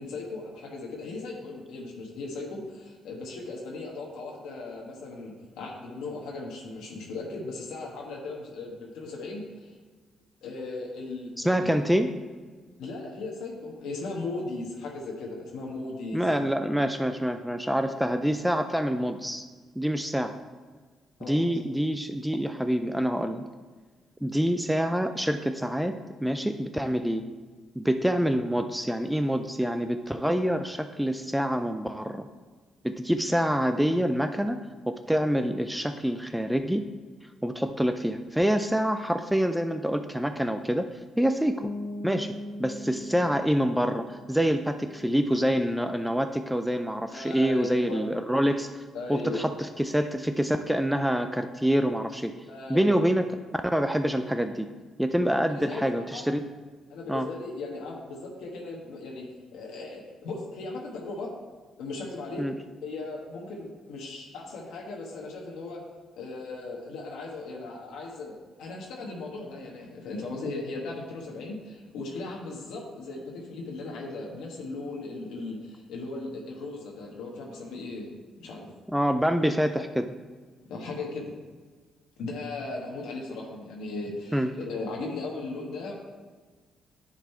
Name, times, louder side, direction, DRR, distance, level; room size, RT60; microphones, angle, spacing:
voice 1, 0.0-9.7 10.4-11.8 12.8-16.4 21.2-21.4 47.1-48.0 48.9-49.5 52.5-53.0 55.5-56.2 56.9-59.3 59.5-61.3 61.8-62.4 62.8-65.8 66.1-68.3 68.6-78.1 78.4-78.7 80.7-81.3 82.2-85.9, left 3 dB, 85° left, -2 dB, 1.2 m, -37 dB
voice 2, 11.4-12.1 16.1-19.4 19.8-20.3 21.2-23.4 24.2-25.9 26.2-27.3 27.8-32.3 32.8-34.6 34.9-36.8 37.4-40.9 41.2-41.7 42.0-42.3 42.6-48.7 49.1-49.5 49.8-52.3 52.7-53.2 53.7-54.7 55.0-56.4 57.1-57.3 62.4-62.5 78.9-80.1 84.3-84.5, equal, 5° right, 7 dB, 0.4 m, -26 dB
sound 1, 41.6-47.2, left 1 dB, 55° left, 1.1 m, -42 dB
9.8 x 4.1 x 4.4 m, 1.4 s
cardioid pair, 90°, 0 cm